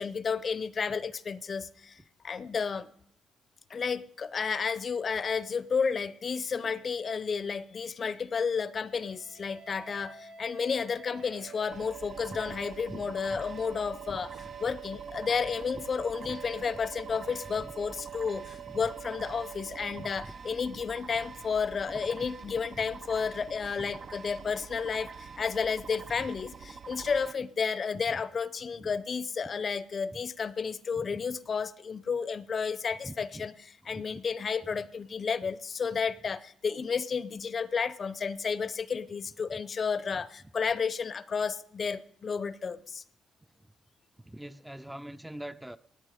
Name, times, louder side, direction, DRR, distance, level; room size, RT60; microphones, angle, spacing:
voice 1, 0.0-2.0 2.2-2.9 3.7-14.3 14.6-33.5 33.9-43.0, left 5 dB, 45° left, 17 dB, 0.7 m, -32 dB
sound 1, 8.9-20.1, right 9 dB, 90° right, 2.2 m, -47 dB
sound 2, 11.7-27.3, right 5 dB, 50° right, 0.6 m, -46 dB
voice 2, 12.9-13.4 14.1-14.2 15.7-15.8 16.2-16.4 17.6-17.7 18.7-18.8 19.9-20.4 21.9-22.0 22.7-22.9 23.8-23.9 26.2-26.3 27.9-28.2 28.7-28.9 29.4-29.5 30.1-30.2 30.9-31.4 33.0-33.5 33.8-34.2 34.6-34.7 39.5-39.6 40.1-40.5 43.6-43.7 44.2-45.8, right 1 dB, 5° right, 10 dB, 0.5 m, -45 dB
19.0 x 8.7 x 5.0 m, 0.68 s
cardioid pair, 90°, 0 cm